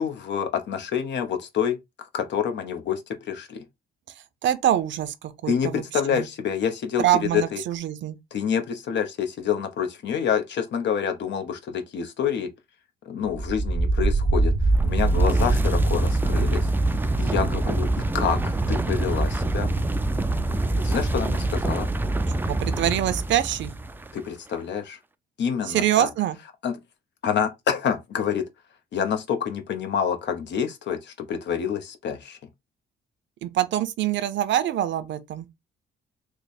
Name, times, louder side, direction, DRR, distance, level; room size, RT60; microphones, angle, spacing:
voice 1, 0.0-1.8 2.1-3.0 3.3-3.6 5.5-7.0 7.3-7.6 8.3-12.5 13.1-14.5 14.8-16.7 17.2-17.9 18.1-19.7 20.8-21.9 24.1-25.0 25.4-26.1 26.6-26.8 27.2-28.4 28.9-32.4, left 7 dB, 65° left, 0.8 m, -27 dB
voice 2, 4.4-6.3 7.0-8.2 22.5-23.7 25.6-26.4 33.4-35.5, right 12 dB, 70° right, 0.6 m, -25 dB
sound 1, 13.3-24.1, right 2 dB, 10° right, 0.3 m, -24 dB
3.2 x 2.1 x 4.1 m
cardioid pair, 90°, 20 cm